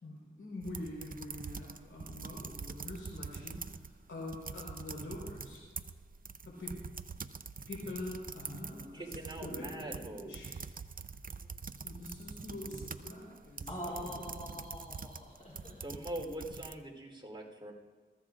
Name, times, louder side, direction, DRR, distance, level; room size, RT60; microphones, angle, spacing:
voice 1, 0.0-3.6 4.1-5.6 6.5-6.7 7.7-9.1 9.4-10.5 11.8-13.7 13.9-14.2, left 2 dB, 85° left, -3 dB, 4.3 m, -44 dB
sound 1, 0.6-3.9 4.2-16.7, right 5 dB, 45° right, 0.6 m, -45 dB
voice 2, 8.8-10.6 11.7-11.8 15.8-17.7, right 1 dB, 25° right, 0 dB, 3.6 m, -43 dB
voice 3, 13.7-15.8, equal, 35° left, -4 dB, 3.6 m, -43 dB
21.5 x 14.5 x 2.5 m, 1.5 s
cardioid pair, 55°, 21 cm